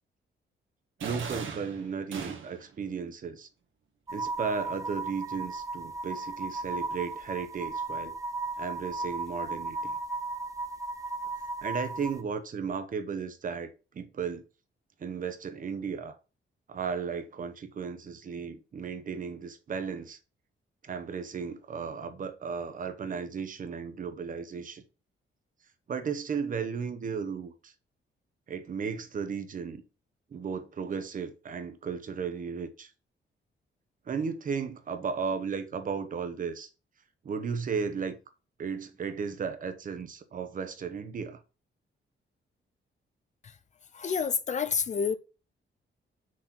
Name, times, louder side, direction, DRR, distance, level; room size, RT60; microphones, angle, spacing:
voice 1, 1.0-3.5 4.1-8.1 8.6-10.0 11.6-14.4 15.0-16.1 16.7-20.2 20.8-24.8 25.9-27.7 28.5-29.8 30.3-32.9 34.1-36.7 37.2-38.2 38.6-41.4, right 6 dB, 45° right, 1.1 m, -35 dB
sound 1, 1.0-2.8, right 6 dB, 80° right, 1.7 m, -38 dB
sound 2, 4.1-12.2, right 3 dB, 15° right, 0.4 m, -35 dB
voice 2, 43.9-45.2, left 6 dB, 35° left, 0.5 m, -29 dB
6.4 x 4.3 x 5.9 m
wide cardioid pair, 175°, 20 cm